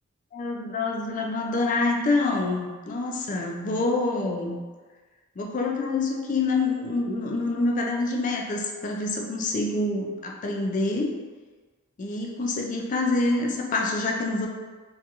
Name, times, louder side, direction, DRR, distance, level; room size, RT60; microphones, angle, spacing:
voice 1, 0.3-4.6 5.4-11.1 12.0-14.5, left 2 dB, 40° left, 0 dB, 0.3 m, -26 dB
2.8 x 2.3 x 2.4 m, 1.4 s
head